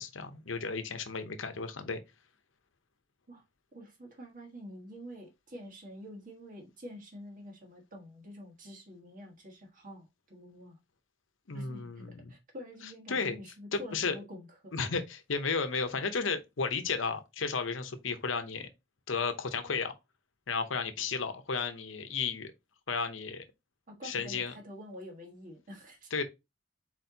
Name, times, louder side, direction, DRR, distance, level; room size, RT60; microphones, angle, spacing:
voice 1, 0.0-2.0 11.5-12.3 13.1-13.4 13.7-14.1 14.7-18.7 19.1-19.9 20.5-22.5 22.9-23.4 24.0-24.5 26.1-26.2, left 5 dB, 75° left, 0.8 m, -33 dB
voice 2, 3.7-10.8 11.5-14.7 23.9-26.2, equal, 45° right, 1.5 m, -47 dB
4.4 x 4.3 x 2.7 m
head